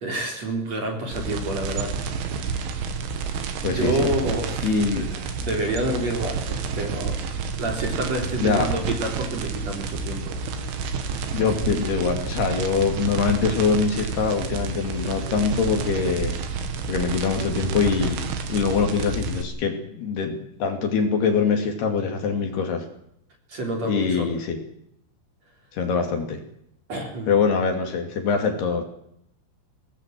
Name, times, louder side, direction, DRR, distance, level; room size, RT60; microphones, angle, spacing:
voice 1, 0.0-2.6 3.7-7.2 7.6-10.3 23.5-24.3 26.9-27.4, right 1 dB, 35° right, 2 dB, 4.6 m, -29 dB
sound 1, 1.1-19.4, right 5 dB, 75° right, 4.5 m, -29 dB
voice 2, 3.6-4.1 4.6-5.1 8.4-8.7 11.3-16.4 16.9-22.9 23.8-24.6 25.7-26.4 27.3-28.8, left 5 dB, 60° left, 5 dB, 4.2 m, -24 dB
23.5 x 19.0 x 7.7 m, 0.73 s
omnidirectional pair, 5.6 m